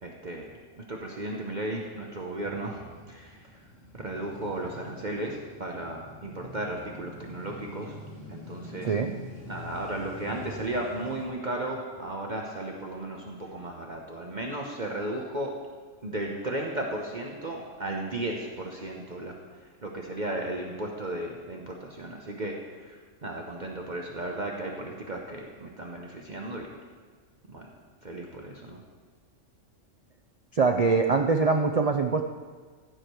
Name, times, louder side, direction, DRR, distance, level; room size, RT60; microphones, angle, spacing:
voice 1, 0.0-2.8 3.1-3.7 3.9-8.0 8.3-8.9 9.5-15.6 16.0-26.7 27.5-27.7 28.0-28.8, right 1 dB, 40° right, 0 dB, 1.0 m, -35 dB
Male speech man speaking / Motorcycle / Idling, 2.3-11.3, left 1 dB, 80° left, 2.4 m, -45 dB
voice 2, 8.8-9.1 30.5-32.3, right 4 dB, 80° right, 5 dB, 0.3 m, -23 dB
14.5 x 5.0 x 6.0 m, 1.5 s
omnidirectional pair, 1.3 m